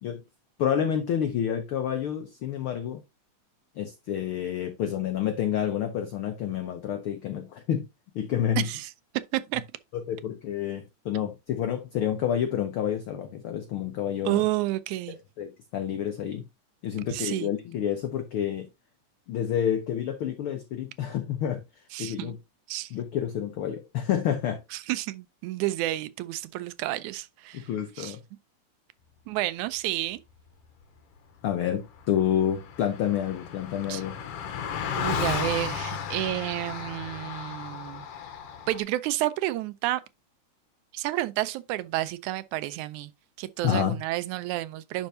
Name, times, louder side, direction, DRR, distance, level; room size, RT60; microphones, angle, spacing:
voice 1, 0.6-3.0 3.8-7.8 8.1-8.7 9.9-14.4 15.4-16.4 16.8-18.7 19.3-21.6 22.0-22.4 22.9-24.6 27.5-28.2 31.4-34.2 43.6-44.0, left 9 dB, 85° left, 1.1 m, -29 dB
voice 2, 8.6-8.9 9.3-9.6 14.3-15.2 17.1-17.5 21.9-22.4 22.7-22.9 24.7-27.7 28.0-28.2 29.3-30.2 33.9-34.0 35.0-38.1 38.7-40.0 40.9-43.1 43.4-45.1, right 16 dB, 85° right, 2.0 m, -30 dB
Car passing by, 31.7-31.8 32.0-38.8, left 7 dB, 65° left, 1.7 m, -34 dB
10.5 x 4.5 x 2.6 m
omnidirectional pair, 3.4 m